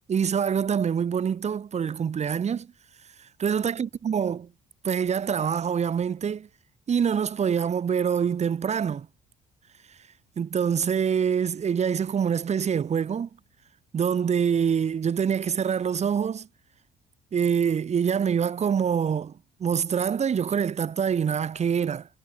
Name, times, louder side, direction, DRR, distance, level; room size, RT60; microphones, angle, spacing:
voice 1, 0.1-2.7 3.2-4.5 4.8-6.5 6.9-9.1 10.4-13.3 13.9-16.5 17.3-19.3 19.6-22.1, right 7 dB, 40° right, 5.2 m, -25 dB
cardioid pair, 110°, 17 cm